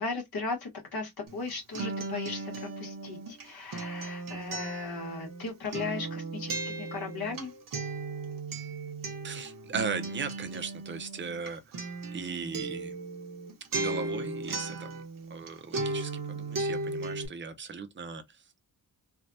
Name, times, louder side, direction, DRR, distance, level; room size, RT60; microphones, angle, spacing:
voice 1, 0.0-7.5, left 4 dB, 75° left, 1.4 m, -37 dB
Acoustic guitar, 1.3-15.5 15.7-17.3, right 3 dB, 65° right, 0.9 m, -36 dB
voice 2, 9.2-11.6 12.1-12.9 13.8-14.9 15.3-18.2, right 5 dB, 30° right, 0.6 m, -37 dB
3.4 x 2.2 x 2.6 m
wide cardioid pair, 140°, 37 cm